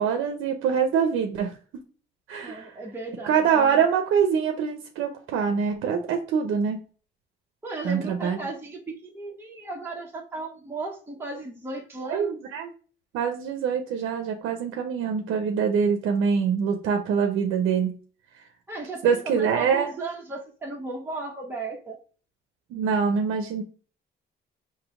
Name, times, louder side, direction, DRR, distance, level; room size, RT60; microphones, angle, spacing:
voice 1, 0.0-1.5 2.3-2.7 3.2-6.8 7.8-8.4 12.1-12.7 13.1-17.9 19.0-19.9 22.7-23.6, right 6 dB, 90° right, 5 dB, 0.6 m, -24 dB
voice 2, 2.4-3.8 7.6-12.3 18.7-22.0, right 3 dB, 10° right, -2 dB, 1.0 m, -35 dB
3.8 x 2.7 x 4.8 m, 0.39 s
cardioid pair, 90°, 20 cm